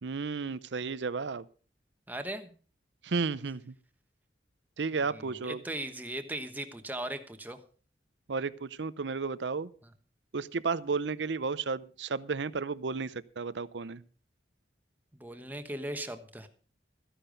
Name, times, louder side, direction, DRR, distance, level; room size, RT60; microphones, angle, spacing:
voice 1, 0.0-1.5 3.0-3.7 4.8-5.6 8.3-9.7 10.3-14.0, right 4 dB, 80° right, 17 dB, 0.6 m, -33 dB
voice 2, 2.1-2.5 4.9-7.6 15.1-16.5, right 1 dB, 10° right, 7 dB, 1.2 m, -38 dB
14.0 x 10.0 x 5.2 m, 0.41 s
head